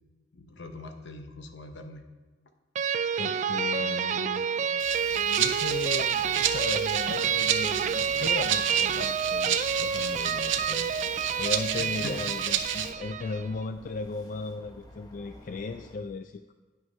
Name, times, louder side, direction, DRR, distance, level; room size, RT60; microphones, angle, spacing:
voice 1, 0.3-2.0 11.7-12.1, left 2 dB, 70° left, 5 dB, 1.0 m, -42 dB
sound 1, 2.8-13.5, right 7 dB, 40° right, 0.3 m, -29 dB
voice 2, 3.2-4.5 5.1-16.5, left 4 dB, 45° left, 9 dB, 0.3 m, -36 dB
Rattle (instrument), 4.8-12.9, right 9 dB, 85° right, 0.7 m, -31 dB
sound 2, 7.6-16.0, equal, 20° left, 0.9 m, -51 dB
9.5 x 5.8 x 5.3 m, 1.3 s
head